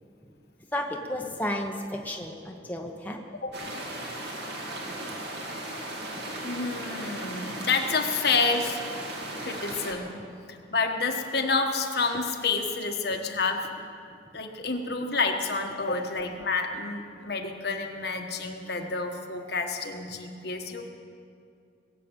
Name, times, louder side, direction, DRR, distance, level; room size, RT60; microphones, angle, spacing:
voice 1, 0.7-3.2 9.4-9.5, left 1 dB, 10° left, 1 dB, 0.9 m, -32 dB
sound 1, 3.5-9.9, right 1 dB, 60° right, 2.3 m, -36 dB
voice 2, 6.4-8.8 9.4-10.1 10.7-13.7 14.3-20.9, left 4 dB, 55° left, 4 dB, 1.3 m, -29 dB
21.0 x 7.6 x 8.9 m, 2.4 s
head